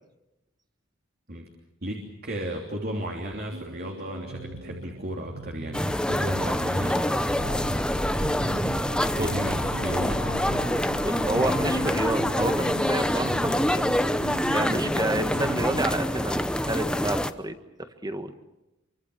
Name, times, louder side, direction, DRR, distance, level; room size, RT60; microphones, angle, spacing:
voice 1, 1.8-7.4 8.6-10.3, equal, 50° right, 1 dB, 3.2 m, -34 dB
sound 1, 3.5-16.0, right 2 dB, 85° right, 2.2 m, -41 dB
sound 2, 5.7-17.3, left 1 dB, 5° left, 0.9 m, -26 dB
sound 3, 7.1-12.5, left 1 dB, 65° left, 4.5 m, -37 dB
voice 2, 11.0-13.9 14.5-18.4, right 1 dB, 20° right, 8 dB, 1.7 m, -30 dB
26.5 x 24.5 x 7.2 m, 0.97 s
head